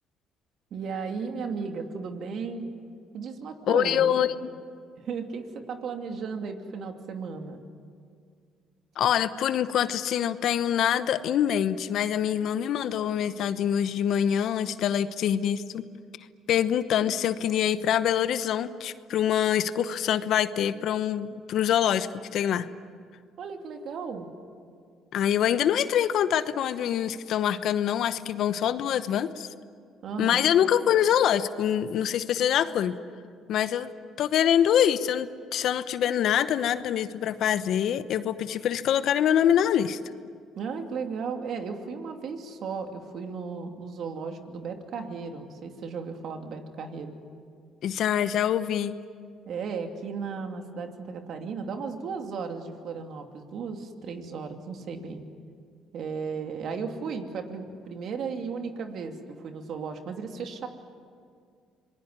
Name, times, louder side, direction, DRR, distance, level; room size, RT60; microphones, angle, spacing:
voice 1, 0.7-2.7 3.1-4.2 5.0-7.6 23.4-24.3 30.0-30.9 40.6-47.1 49.5-55.2 55.9-60.7, right 5 dB, 60° right, 5 dB, 2.7 m, -35 dB
voice 2, 3.7-4.5 9.0-15.8 16.5-22.7 25.1-29.5 30.2-33.0 33.5-33.9 34.2-40.0 47.8-49.0, left 10 dB, 65° left, 13 dB, 1.0 m, -25 dB
26.5 x 21.0 x 9.7 m, 2.2 s
supercardioid pair, 75°, 0 cm